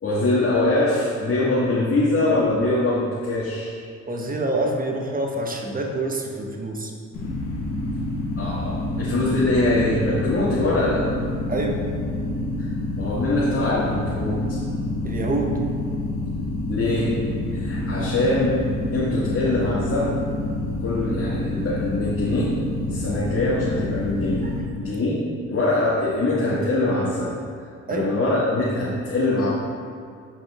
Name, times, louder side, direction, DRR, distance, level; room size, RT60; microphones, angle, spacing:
voice 1, 0.0-3.8 8.4-11.1 12.6-14.9 16.7-17.2 17.5-18.6 18.9-20.2 20.8-22.5 22.9-24.4 24.7-25.2 25.5-27.3 27.9-29.5, left 2 dB, 40° left, -8 dB, 2.0 m, -23 dB
voice 2, 4.1-6.9 11.5-11.8 15.0-15.6 27.9-28.1, right 2 dB, 25° right, 1 dB, 1.4 m, -26 dB
sound 1, 7.1-24.6, left 1 dB, 90° left, 1.6 m, -27 dB
9.0 x 5.6 x 3.7 m, 2.2 s
supercardioid pair, 55°, 33 cm